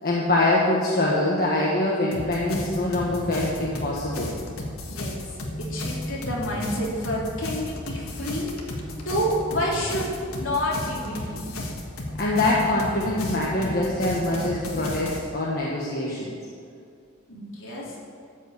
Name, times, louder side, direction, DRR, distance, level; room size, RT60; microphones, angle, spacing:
voice 1, 0.0-4.3 12.2-16.3, left 2 dB, 45° left, -4 dB, 1.4 m, -24 dB
sound 1, 2.1-15.2, left 1 dB, 90° left, 1.6 m, -34 dB
voice 2, 5.6-8.5 9.0-11.4 17.3-17.8, equal, 65° left, -5 dB, 3.1 m, -28 dB
13.5 x 5.3 x 8.1 m, 2.3 s
head